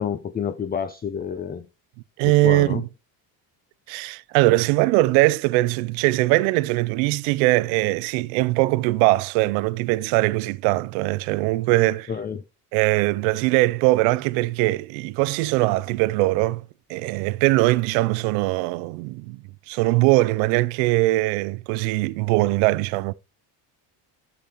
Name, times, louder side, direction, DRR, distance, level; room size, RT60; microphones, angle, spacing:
voice 1, 0.0-1.7 2.2-2.8 12.1-12.4, left 7 dB, 20° left, 0.5 m, -29 dB
voice 2, 2.2-2.9 3.9-12.1 12.7-16.6 16.9-23.1, right 20 dB, 90° right, 0.5 m, -21 dB
10.5 x 7.1 x 2.9 m
supercardioid pair, 95°, 48 cm